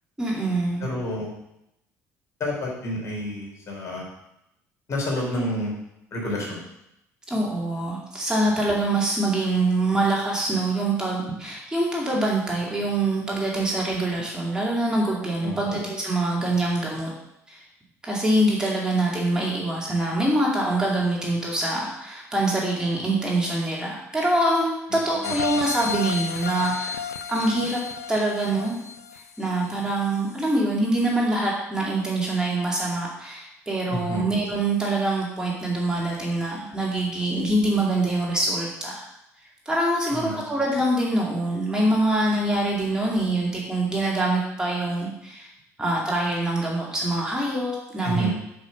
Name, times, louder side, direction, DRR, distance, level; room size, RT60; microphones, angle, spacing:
voice 1, 0.2-0.9 7.3-17.1 17.5-17.6 18.0-27.0 27.3-27.8 28.1-28.8 29.4-39.0 39.7-45.5 45.8-48.3, right 2 dB, 10° right, -4 dB, 2.3 m, -24 dB
voice 2, 0.8-1.3 2.4-4.1 4.9-5.7 6.1-6.6 15.4-15.8 24.9-25.0 25.2-25.6 33.9-34.3 40.1-40.4 48.0-48.3, equal, 40° left, -2 dB, 3.7 m, -29 dB
sound 1, 25.2-30.0 30.4-30.5, left 6 dB, 80° left, 0.4 m, -32 dB
9.3 x 5.0 x 5.3 m, 0.83 s
figure-of-eight pair, 55°, 8 cm